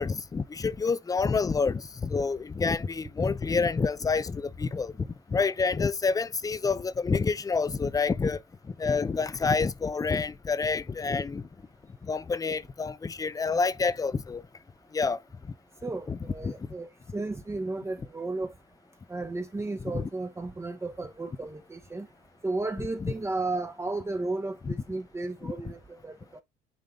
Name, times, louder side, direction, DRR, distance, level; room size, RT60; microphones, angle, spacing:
voice 1, 0.0-4.9 5.3-8.4 8.8-11.4 12.1-14.4 14.9-15.2 16.1-16.2 16.4-16.5 19.9-20.1 23.0-23.1 24.6-24.7 25.4-25.5, left 4 dB, 20° left, 0.6 m, -28 dB
voice 2, 15.8-18.5 19.1-22.1 22.4-26.4, right 2 dB, 15° right, 0.9 m, -34 dB
9.3 x 3.4 x 3.7 m
cardioid pair, 110°, 17 cm